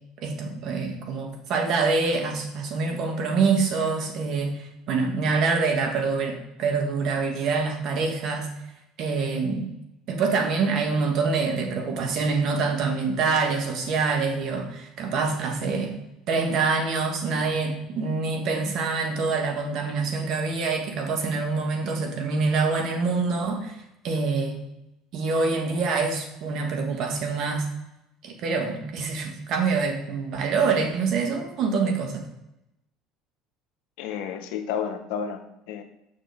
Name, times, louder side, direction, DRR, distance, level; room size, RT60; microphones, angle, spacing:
voice 1, 0.2-8.5 9.0-9.7 10.1-15.9 16.3-23.8 24.0-24.6 25.1-27.7 28.2-32.3, right 4 dB, 60° right, 3 dB, 1.5 m, -25 dB
voice 2, 34.0-35.8, left 7 dB, 75° left, 7 dB, 0.8 m, -31 dB
6.8 x 6.1 x 3.5 m, 0.87 s
supercardioid pair, 80°, 0 cm